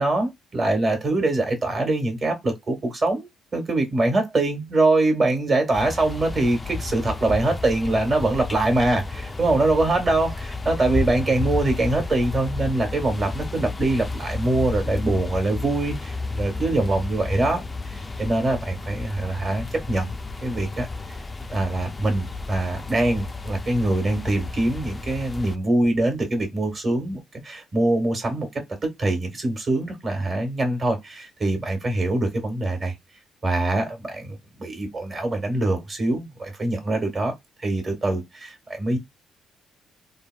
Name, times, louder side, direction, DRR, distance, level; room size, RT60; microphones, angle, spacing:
voice 1, 0.0-20.1 20.4-20.9 21.5-32.9 33.4-37.3 37.6-39.0, right 2 dB, 40° right, 1.3 m, -24 dB
sound 1, 5.7-25.6, left 3 dB, 25° left, 0.3 m, -32 dB
3.3 x 2.2 x 2.2 m
cardioid pair, 90°, 0 cm